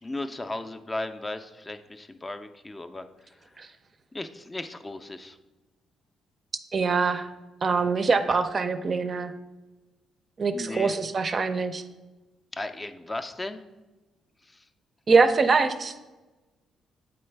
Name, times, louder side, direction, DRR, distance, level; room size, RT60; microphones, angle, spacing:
voice 1, 0.0-3.6 4.1-5.4 10.5-10.9 12.5-13.6 14.4-14.6, left 2 dB, 20° left, 8 dB, 0.4 m, -36 dB
voice 2, 6.7-7.3 7.6-9.3 10.4-11.8 15.1-15.9, right 4 dB, 40° right, 9 dB, 0.4 m, -23 dB
7.7 x 3.9 x 3.3 m, 1.2 s
cardioid pair, 90°, 0 cm